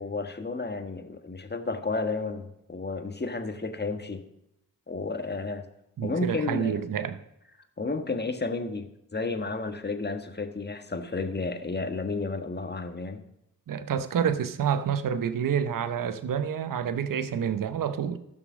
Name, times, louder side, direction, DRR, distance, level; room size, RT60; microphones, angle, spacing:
voice 1, 0.0-4.3 4.9-5.6 6.0-6.8 7.8-13.2, left 3 dB, 25° left, 1.6 m, -32 dB
voice 2, 6.0-7.2 13.7-18.2, right 8 dB, 60° right, 0.8 m, -28 dB
13.5 x 6.3 x 5.2 m
supercardioid pair, 45°, 38 cm